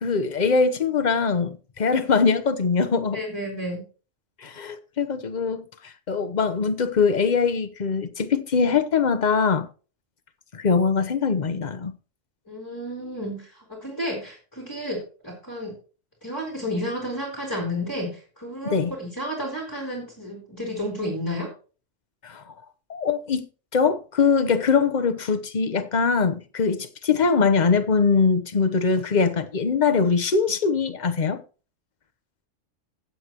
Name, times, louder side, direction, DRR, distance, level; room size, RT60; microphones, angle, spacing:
voice 1, 0.0-3.2 4.4-9.7 10.5-11.9 18.7-18.9 22.2-22.4 22.9-23.5 23.7-31.4, left 5 dB, 40° left, 0.9 m, -22 dB
voice 2, 3.1-3.8 12.5-15.0 15.2-15.7 16.2-21.5, equal, 15° left, 3.5 m, -31 dB
15.5 x 8.3 x 3.0 m
omnidirectional pair, 1.3 m